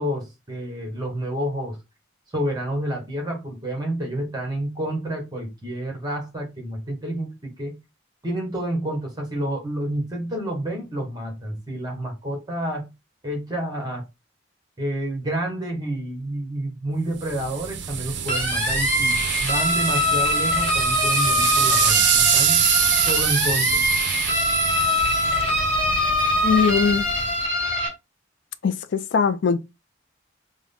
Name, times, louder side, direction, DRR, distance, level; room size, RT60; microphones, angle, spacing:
voice 1, 0.0-1.8 2.3-7.8 8.2-12.9 13.2-14.1 14.8-22.7 23.0-23.8, right 1 dB, 20° right, 1.1 m, -29 dB
sound 1, 17.2-27.5, right 9 dB, 60° right, 0.5 m, -25 dB
sound 2, 18.3-27.9, left 1 dB, 10° left, 2.0 m, -23 dB
voice 2, 26.4-27.1 28.6-29.6, left 5 dB, 60° left, 0.4 m, -21 dB
3.6 x 2.1 x 3.5 m
head